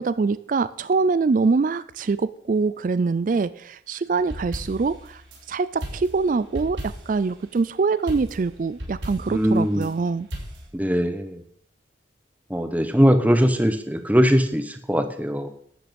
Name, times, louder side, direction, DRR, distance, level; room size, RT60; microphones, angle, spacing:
voice 1, 0.0-5.2 5.5-10.3, right 4 dB, 45° right, 16 dB, 0.3 m, -24 dB
sound 1, 4.2-5.4 5.8-7.3 8.1-9.9 10.3-10.6, equal, 75° right, 4.1 m, -35 dB
voice 2, 9.3-9.9 10.7-11.4 12.5-15.5, equal, 10° right, 8 dB, 0.9 m, -20 dB
12.0 x 8.7 x 5.3 m, 0.66 s
head